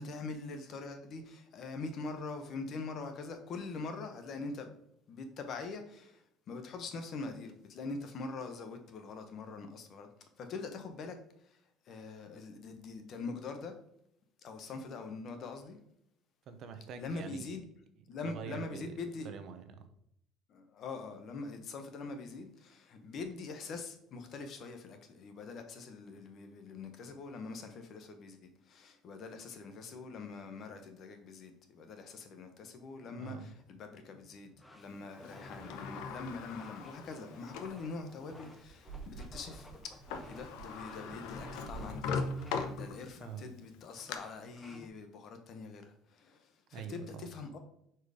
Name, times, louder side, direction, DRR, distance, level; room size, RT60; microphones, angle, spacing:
voice 1, 0.0-4.7 5.1-13.7 14.4-15.8 16.9-17.6 18.1-19.3 20.5-40.0 40.3-42.3 42.7-47.6, left 3 dB, 40° left, 0.9 m, -44 dB
voice 2, 16.5-17.4 18.2-18.9 19.2-19.9 33.0-33.5 43.2-43.5 46.7-47.3, right 7 dB, 45° right, 0.7 m, -45 dB
sound 1, 33.4-44.9, left 1 dB, 10° left, 0.6 m, -56 dB
Sliding door, 35.2-37.8 38.4-38.5 39.8-39.9 40.1-43.3 43.7-44.2, left 4 dB, 85° left, 0.8 m, -40 dB
sound 2, 36.8-43.3, right 3 dB, 20° right, 2.4 m, -52 dB
5.0 x 4.5 x 4.9 m
cardioid pair, 160°, 0 cm